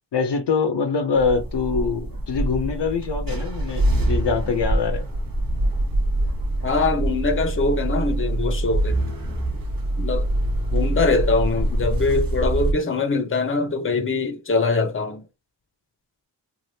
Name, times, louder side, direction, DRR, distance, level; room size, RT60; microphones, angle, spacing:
voice 1, 0.1-5.1, left 5 dB, 65° left, 0.7 m, -24 dB
sound 1, 1.2-12.7, right 1 dB, 50° right, 1.0 m, -24 dB
voice 2, 6.6-9.1 10.0-10.3 10.7-15.3, left 3 dB, 25° left, 0.7 m, -23 dB
3.3 x 2.4 x 2.7 m
wide cardioid pair, 70°, 46 cm